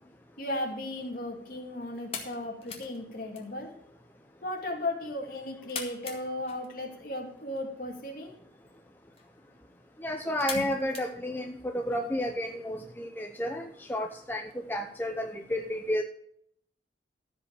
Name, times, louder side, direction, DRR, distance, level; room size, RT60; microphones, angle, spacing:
voice 1, 0.4-3.7 4.4-8.3 10.5-10.6, left 1 dB, 50° left, 1 dB, 2.6 m, -36 dB
sound 1, 0.6-12.0, left 5 dB, 35° left, 2.0 m, -46 dB
voice 2, 10.0-16.0, left 1 dB, 10° left, 3 dB, 0.7 m, -32 dB
14.5 x 5.3 x 6.7 m, 0.66 s
head